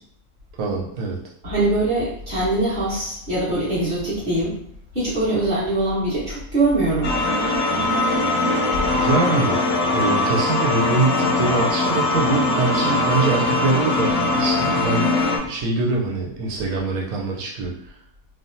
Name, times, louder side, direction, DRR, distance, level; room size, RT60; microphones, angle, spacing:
voice 1, 0.6-1.2 8.9-9.6 9.9-17.9, right 3 dB, 90° right, -1 dB, 1.1 m, -24 dB
voice 2, 1.4-4.5 4.9-7.1, right 2 dB, 35° right, -9 dB, 1.5 m, -22 dB
sound 1, 7.0-15.4, left 2 dB, 65° left, 0.8 m, -21 dB
3.3 x 2.0 x 2.6 m, 0.69 s
omnidirectional pair, 1.5 m